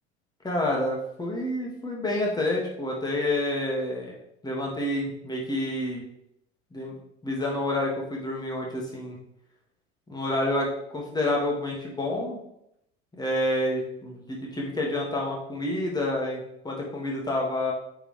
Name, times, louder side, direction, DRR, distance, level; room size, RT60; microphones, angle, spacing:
voice 1, 0.4-4.1 4.4-6.0 6.7-6.9 7.2-9.2 10.1-12.4 13.2-17.7, left 1 dB, 10° left, -2 dB, 2.1 m, -28 dB
8.6 x 4.6 x 3.4 m, 0.79 s
figure-of-eight pair, 70°, 34 cm